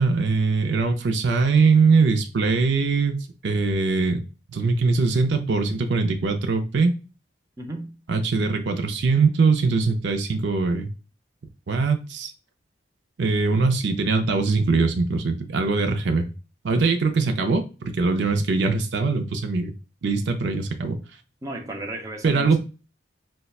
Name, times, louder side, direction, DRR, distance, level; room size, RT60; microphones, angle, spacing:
voice 1, 0.0-4.2 4.5-6.9 8.1-10.9 11.7-12.3 13.2-16.3 16.6-19.7 20.0-21.0 22.2-22.6, right 4 dB, 70° right, 0.5 m, -22 dB
voice 2, 7.6-7.9 21.4-22.6, right 1 dB, 20° right, 0.5 m, -34 dB
5.4 x 2.1 x 2.3 m
head